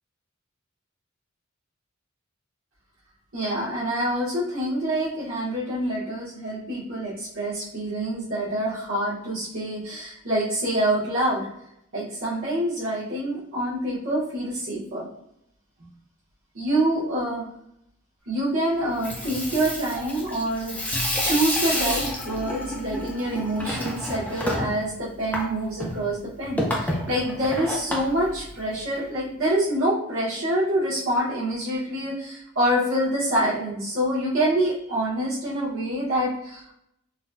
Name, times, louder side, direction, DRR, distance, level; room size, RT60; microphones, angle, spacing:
voice 1, 3.3-11.5 11.9-15.1 16.5-17.4 18.3-20.8 21.2-36.7, right 1 dB, 75° right, -9 dB, 1.2 m, -26 dB
Water tap faucet / Sink (filling or washing), 18.8-29.0, left 1 dB, 5° left, 0.5 m, -30 dB
3.9 x 2.2 x 2.6 m, 0.76 s
head